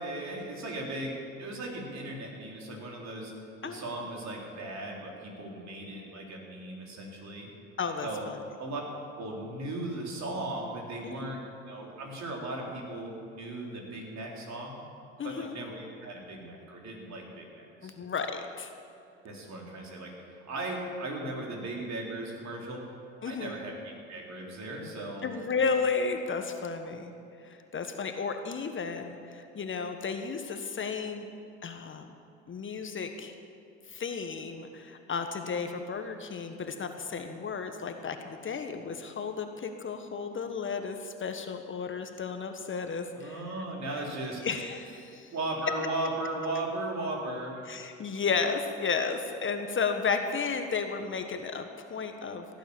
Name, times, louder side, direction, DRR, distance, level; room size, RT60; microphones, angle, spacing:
voice 1, 0.0-3.3 3.6-7.5 8.0-8.2 8.6-8.8 9.2-11.4 11.7-14.8 15.2-17.9 19.2-22.8 23.2-25.3 43.1-44.4 45.3-47.6, right 2 dB, 50° right, -1 dB, 4.0 m, -37 dB
voice 2, 7.8-8.4 11.0-11.4 15.2-15.6 17.8-18.7 23.2-23.6 25.2-27.1 27.4-31.3 31.6-32.1 32.5-33.3 33.9-43.4 44.4-45.3 47.7-52.4, left 5 dB, 35° left, 6 dB, 1.4 m, -33 dB
17.0 x 9.3 x 7.1 m, 2.7 s
hypercardioid pair, 60°, 34 cm